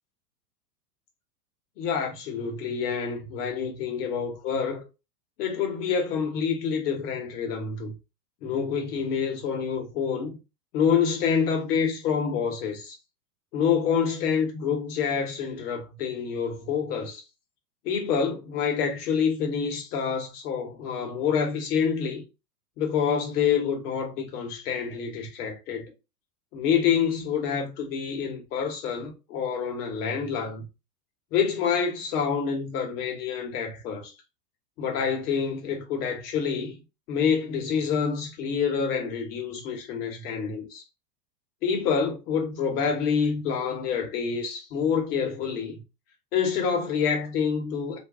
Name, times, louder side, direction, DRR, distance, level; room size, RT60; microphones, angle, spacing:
voice 1, 1.8-4.9 5.4-7.9 8.4-10.4 10.7-13.0 13.5-17.2 17.8-22.2 22.8-25.9 26.5-30.6 31.3-34.1 34.8-36.8 37.1-40.8 41.6-45.8 46.3-48.0, left 6 dB, 65° left, 1.2 m, -27 dB
2.6 x 2.2 x 3.4 m
hypercardioid pair, 125°, 50 cm